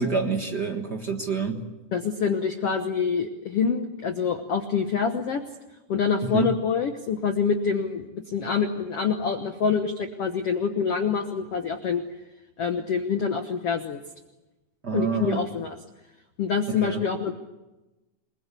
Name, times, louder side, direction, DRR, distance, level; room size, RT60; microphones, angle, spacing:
voice 1, 0.0-1.7 6.2-6.5 14.8-15.4 16.7-17.0, right 4 dB, 60° right, 3 dB, 1.0 m, -27 dB
voice 2, 1.9-5.4 5.9-12.0 12.6-14.0 14.9-15.8 16.4-17.3, left 6 dB, 85° left, 6 dB, 1.3 m, -26 dB
28.5 x 21.0 x 8.4 m, 1.1 s
omnidirectional pair, 4.7 m